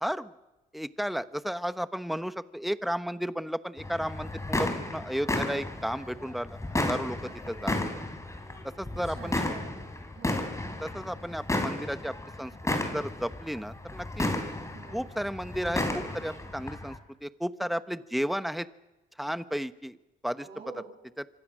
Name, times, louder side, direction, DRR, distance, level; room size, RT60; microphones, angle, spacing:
voice 1, 0.0-0.3 0.7-7.7 8.6-9.4 10.8-14.3 14.9-16.9 17.2-18.7 19.2-20.0 20.2-20.5 21.2-21.3, equal, ahead, 12 dB, 1.1 m, -33 dB
sound 1, 3.8-17.0, left 1 dB, 15° left, 4.4 m, -33 dB
voice 2, 7.2-8.0 9.2-9.8 10.1-10.5 14.7-15.1 20.4-20.9, right 5 dB, 55° right, -1 dB, 6.3 m, -47 dB
26.0 x 25.5 x 6.3 m, 1.0 s
cardioid pair, 90°, 20 cm